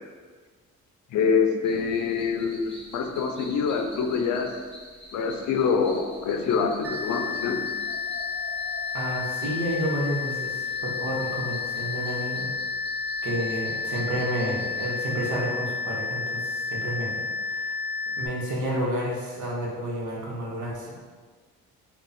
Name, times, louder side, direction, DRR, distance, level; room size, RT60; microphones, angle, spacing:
voice 1, 1.1-4.5 5.1-7.6, left 5 dB, 70° left, 4 dB, 0.5 m, -25 dB
sound 1, 1.6-14.9, equal, 20° left, 0.9 m, -46 dB
sound 2, 6.8-18.3, left 5 dB, 5° right, 0.5 m, -31 dB
voice 2, 8.9-12.5 13.2-17.7 18.1-21.0, equal, 75° right, -3 dB, 1.1 m, -30 dB
3.5 x 2.3 x 4.1 m, 1.5 s
cardioid pair, 90°, 30 cm